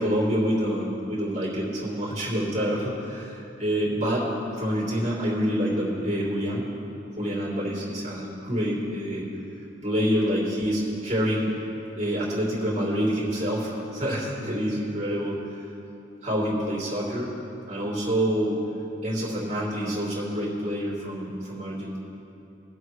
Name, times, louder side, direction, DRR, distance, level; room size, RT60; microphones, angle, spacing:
voice 1, 0.0-4.3 4.6-6.7 7.2-9.2 9.8-11.6 11.9-15.4 16.2-17.3 17.7-18.6 19.0-22.0, equal, 40° right, -6 dB, 3.1 m, -27 dB
22.5 x 7.9 x 3.2 m, 2.9 s
head